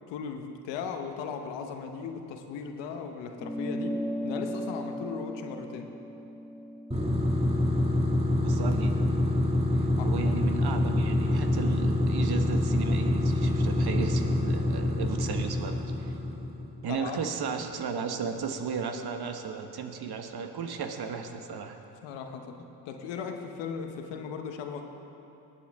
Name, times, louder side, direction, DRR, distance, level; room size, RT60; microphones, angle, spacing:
voice 1, 0.1-5.9 10.0-10.1 16.9-17.3 22.0-24.8, left 6 dB, 90° left, 5 dB, 0.9 m, -37 dB
sound 1, 3.4-8.2, equal, ahead, 0.4 m, -37 dB
sound 2, 6.9-16.7, left 1 dB, 15° right, 2.0 m, -26 dB
voice 2, 8.4-8.9 9.8-16.1 16.8-21.8, right 6 dB, 60° right, 6 dB, 1.2 m, -35 dB
18.0 x 8.5 x 3.5 m, 3.0 s
supercardioid pair, 50°, 42 cm